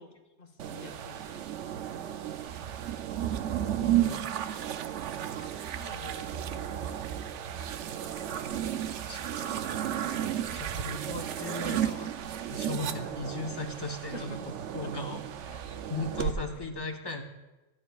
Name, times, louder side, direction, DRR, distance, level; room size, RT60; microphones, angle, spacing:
voice 1, 0.0-2.1 2.6-2.8 5.3-6.7 12.9-13.1 14.1-14.4 15.5-15.7 16.2-16.4, left 2 dB, 40° left, 3 dB, 1.2 m, -49 dB
sound 1, 0.6-16.3, right 10 dB, 75° right, 0.9 m, -33 dB
voice 2, 3.8-4.1 5.4-5.7 9.0-9.2 10.5-12.1 12.5-14.3 14.7-15.2 15.9-17.2, left 2 dB, 20° left, 3 dB, 0.9 m, -37 dB
14.0 x 11.0 x 2.3 m, 1.1 s
omnidirectional pair, 1.3 m